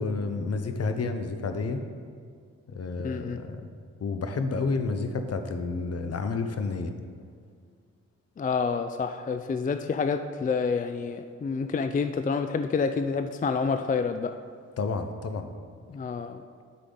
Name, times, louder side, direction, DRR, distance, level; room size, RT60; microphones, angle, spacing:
voice 1, 0.0-1.8 2.7-3.7 4.0-6.9 14.8-15.5, left 4 dB, 55° left, 7 dB, 0.7 m, -30 dB
voice 2, 3.0-3.4 8.4-14.4 15.9-16.4, left 5 dB, 30° left, 8 dB, 0.3 m, -28 dB
8.4 x 5.7 x 3.8 m, 2.2 s
cardioid pair, 50°, 30 cm